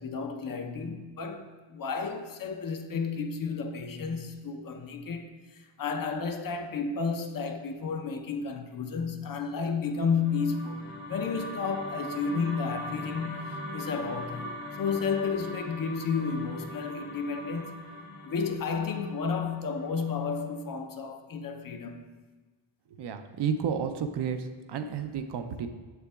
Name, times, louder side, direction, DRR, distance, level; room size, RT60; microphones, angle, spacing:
voice 1, 0.0-17.8 18.2-22.0, left 5 dB, 45° left, 0.6 m, -32 dB
sound 1, 10.0-20.3, left 1 dB, 80° left, 1.4 m, -41 dB
voice 2, 22.9-25.7, right 7 dB, 55° right, 0.6 m, -32 dB
6.8 x 6.6 x 2.3 m
cardioid pair, 85°, 49 cm